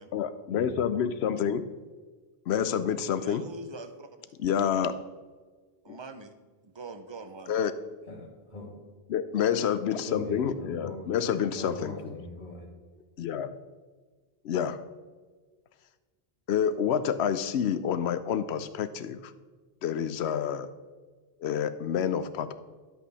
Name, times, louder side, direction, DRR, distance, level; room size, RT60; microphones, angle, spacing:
voice 1, 0.1-1.7 2.5-3.4 4.4-5.0 5.9-6.0 7.5-7.7 9.1-12.1 13.2-13.6 14.4-14.8 16.5-19.3 19.8-20.7 21.4-22.5, left 8 dB, 90° left, 12 dB, 0.9 m, -28 dB
voice 2, 3.2-4.1 5.8-6.3 6.7-7.6, right 3 dB, 30° right, 7 dB, 0.7 m, -43 dB
voice 3, 8.1-9.0 10.0-11.1 11.5-12.7, left 1 dB, 45° left, 0 dB, 1.8 m, -41 dB
10.0 x 8.0 x 4.1 m, 1.4 s
omnidirectional pair, 1.1 m